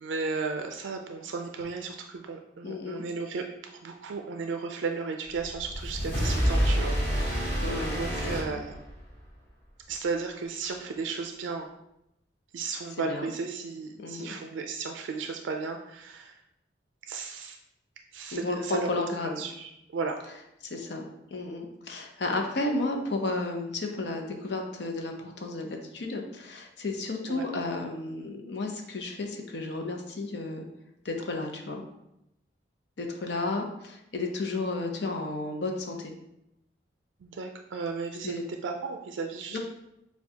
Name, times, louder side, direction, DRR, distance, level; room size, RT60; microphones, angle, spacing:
voice 1, 0.0-7.6 8.0-8.8 9.9-11.7 12.5-16.4 17.1-17.6 18.1-18.9 19.4-20.2 27.3-27.4 37.2-39.6, right 4 dB, 80° right, 4 dB, 0.3 m, -34 dB
voice 2, 2.6-3.0 7.6-8.0 8.2-8.6 13.0-13.3 14.0-14.3 18.3-19.4 20.6-21.0 21.3-30.6 31.0-31.8 33.0-36.1 38.2-38.4 39.5-39.6, left 2 dB, 65° left, 3 dB, 0.6 m, -33 dB
sound 1, 5.4-9.2, equal, 10° left, 1.3 m, -28 dB
6.7 x 2.3 x 2.8 m, 0.84 s
head